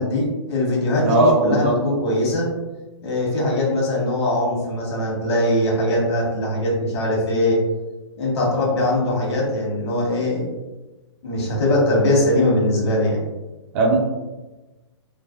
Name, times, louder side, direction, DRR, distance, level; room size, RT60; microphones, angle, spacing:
voice 1, 0.0-2.5 3.0-7.6 8.2-10.5 11.2-13.2, left 1 dB, 60° left, -3 dB, 1.2 m, -21 dB
voice 2, 1.0-1.8 13.7-14.0, right 2 dB, 25° right, -2 dB, 0.4 m, -17 dB
3.2 x 2.2 x 2.4 m, 1.1 s
hypercardioid pair, 150°, 15 cm